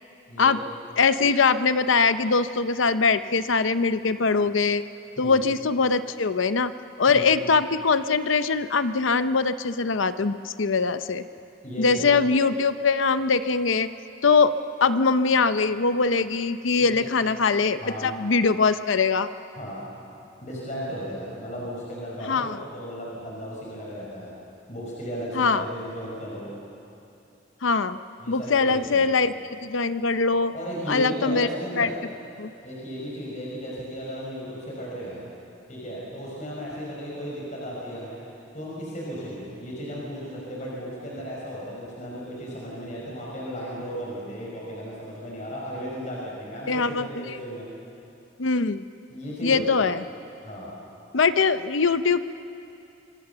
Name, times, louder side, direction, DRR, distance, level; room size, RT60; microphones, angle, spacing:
voice 1, 0.3-0.7 5.2-5.4 7.1-7.3 11.6-12.1 16.8-17.0 17.8-18.2 19.6-19.9 20.4-24.3 24.7-26.5 28.2-29.1 30.5-32.0 32.6-35.2 35.7-38.2 38.5-47.6 49.1-49.8 50.4-50.7, equal, 40° left, -5 dB, 5.2 m, -35 dB
voice 2, 1.0-4.8 5.2-6.7 7.0-11.2 11.8-13.9 14.2-14.5 14.8-19.3 22.2-22.6 25.3-25.6 27.6-28.0 28.3-30.5 30.9-31.5 31.7-31.9 32.4-32.5 46.7-47.4 48.4-48.8 49.4-50.0 51.1-52.2, left 4 dB, 85° left, 12 dB, 0.7 m, -22 dB
25.5 x 24.5 x 6.9 m, 2.7 s
head